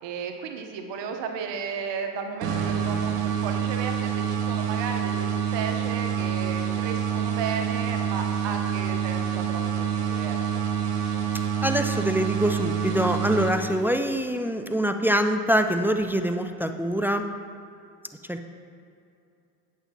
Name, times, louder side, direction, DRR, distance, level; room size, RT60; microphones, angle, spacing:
voice 1, 0.0-10.4, right 6 dB, 65° right, 4 dB, 1.1 m, -34 dB
sound 1, 2.4-14.1, right 8 dB, 85° right, 1.3 m, -27 dB
voice 2, 11.6-17.3 18.3-18.5, equal, 5° right, 7 dB, 0.3 m, -24 dB
8.6 x 7.4 x 4.1 m, 2.5 s
supercardioid pair, 75°, 46 cm